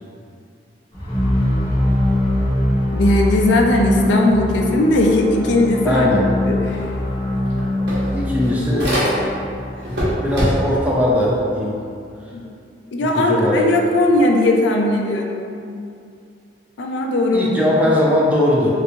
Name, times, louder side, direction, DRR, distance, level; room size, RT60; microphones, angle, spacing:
sound 1, 0.9-11.0, left 1 dB, 25° left, 0.7 m, -22 dB
voice 1, 2.9-6.1 6.5-6.8 12.3-12.4 12.9-15.5 16.8-17.5, left 1 dB, 75° left, 1 dB, 0.4 m, -18 dB
voice 2, 5.8-6.2 8.1-8.9 10.1-11.7 13.0-13.6 17.3-18.7, left 1 dB, 10° right, -5 dB, 0.4 m, -19 dB
sound 2, 6.8-6.9 7.2-9.5 9.8-10.9, equal, 65° right, 1.0 m, -23 dB
3.2 x 2.9 x 2.6 m, 2.5 s
head